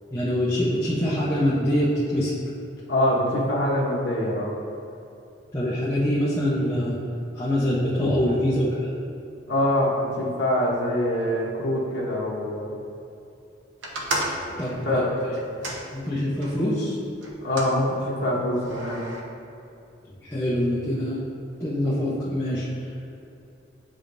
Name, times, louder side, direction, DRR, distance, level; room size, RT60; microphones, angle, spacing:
voice 1, 0.1-2.3 5.5-7.0 7.3-8.9 14.6-14.9 15.2-15.3 15.9-17.0 20.2-21.2 21.6-22.7, equal, 15° left, -10 dB, 0.8 m, -24 dB
voice 2, 2.9-4.5 8.0-8.1 9.5-12.7 14.4-15.2 17.4-19.1, left 1 dB, 75° left, -6 dB, 1.0 m, -24 dB
sound 1, 13.8-16.6 17.2-17.8 18.5-19.2, right 1 dB, 90° right, 0.9 m, -33 dB
8.6 x 5.0 x 2.6 m, 2.7 s
head